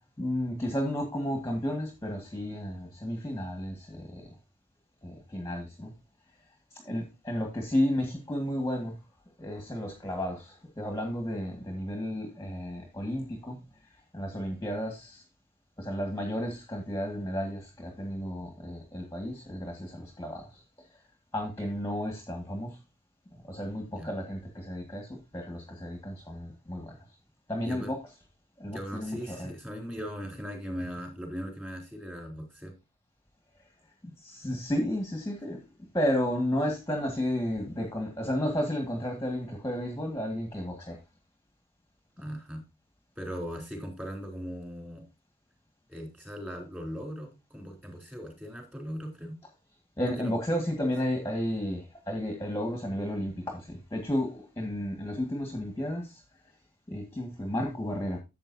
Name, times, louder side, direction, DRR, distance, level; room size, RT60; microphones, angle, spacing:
voice 1, 0.2-4.3 5.0-5.9 6.7-9.0 9.4-15.2 15.8-20.6 21.3-22.8 23.4-27.0 27.5-28.0 28.6-29.5 34.2-35.6 35.9-41.0 50.0-56.2 56.9-58.2, equal, 15° left, 2 dB, 1.8 m, -32 dB
voice 2, 28.7-32.7 42.2-42.6 43.2-45.0 45.9-49.4 50.2-50.3, equal, 10° right, 2 dB, 3.9 m, -39 dB
12.5 x 7.7 x 2.7 m, 0.25 s
head